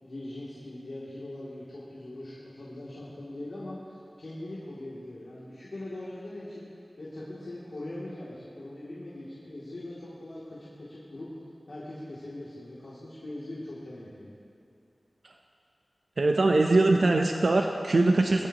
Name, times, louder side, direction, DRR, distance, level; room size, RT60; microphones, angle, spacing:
voice 1, 0.0-6.7 7.0-11.3 11.7-14.3, left 1 dB, 65° left, -9 dB, 2.7 m, -41 dB
voice 2, 16.2-18.5, right 2 dB, 70° right, 2 dB, 0.7 m, -22 dB
21.5 x 13.0 x 3.0 m, 2.5 s
wide cardioid pair, 80°, 0 cm